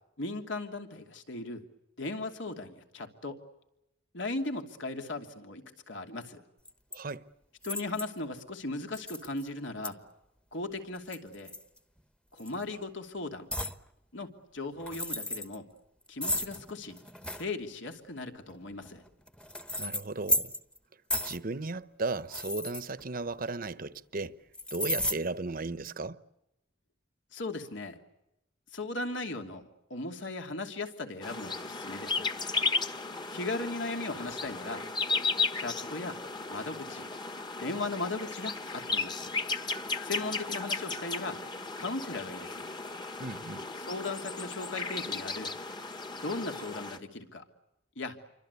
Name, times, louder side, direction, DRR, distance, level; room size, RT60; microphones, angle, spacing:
voice 1, 0.2-1.6 2.0-3.4 4.1-6.4 7.6-10.0 10.5-11.5 12.3-13.5 14.1-15.7 16.1-17.0 17.3-19.0 27.3-28.0 28.7-32.3 33.3-34.8 35.6-36.2 36.5-37.1 37.6-39.3 40.0-41.4 41.8-42.7 43.8-45.5 46.2-47.4 48.0-48.2, left 2 dB, 75° left, 2.9 m, -37 dB
sound 1, 6.7-7.0 7.6-8.2 8.9-9.5 9.8-9.9 11.0-12.0 12.4-12.6 13.5-13.8 14.8-15.6 16.2-17.5 18.5-20.8 21.1-21.4 22.2-23.5 24.5-25.2, left 1 dB, 5° left, 1.1 m, -34 dB
voice 2, 6.9-7.3 19.8-20.5 21.2-24.4 24.7-26.2 43.2-43.7, right 3 dB, 50° right, 1.0 m, -35 dB
sound 2, 31.2-47.0, left 4 dB, 25° left, 1.4 m, -35 dB
28.5 x 24.5 x 8.3 m
head